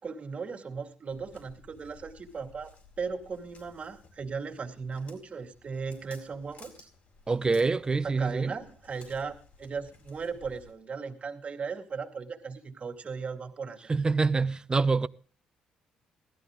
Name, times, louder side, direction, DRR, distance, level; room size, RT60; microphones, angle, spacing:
voice 1, 0.0-6.9 8.0-13.9, right 5 dB, 45° right, 2.4 m, -37 dB
Walk footsteps, 1.1-10.7, left 4 dB, 60° left, 4.4 m, -56 dB
voice 2, 7.3-8.6 13.9-15.1, right 4 dB, 25° right, 0.7 m, -26 dB
16.5 x 13.0 x 3.7 m
supercardioid pair, 65°, 3 cm